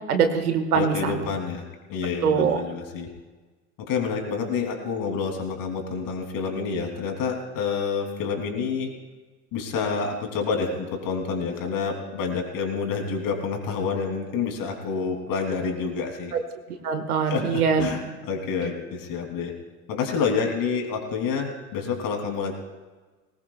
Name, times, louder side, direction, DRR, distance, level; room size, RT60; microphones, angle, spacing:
voice 1, 0.1-1.3 2.2-2.6 16.3-16.4 16.8-17.9, right 6 dB, 80° right, 7 dB, 1.8 m, -23 dB
voice 2, 0.7-3.1 3.8-8.9 9.5-16.3 17.2-19.5 19.9-22.5, left 5 dB, 50° left, 3 dB, 3.2 m, -28 dB
20.0 x 19.0 x 2.4 m, 1.3 s
hypercardioid pair, 75°, 44 cm